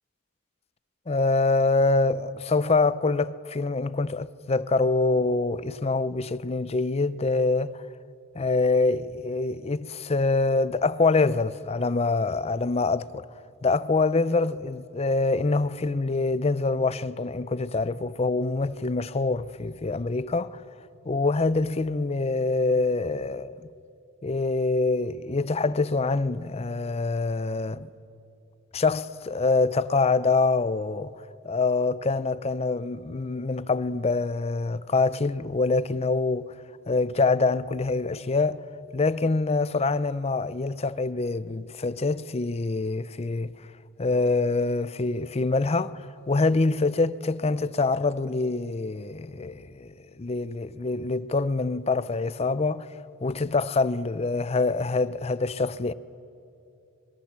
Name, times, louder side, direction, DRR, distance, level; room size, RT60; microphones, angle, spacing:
voice 1, 1.1-7.8 8.4-13.3 13.6-20.6 21.1-23.7 24.2-27.9 28.7-31.1 31.4-36.5 36.9-38.6 38.9-43.5 44.0-49.9 50.2-52.9 53.2-55.9, left 3 dB, 30° left, 0.5 m, -25 dB
25.5 x 21.5 x 7.4 m
head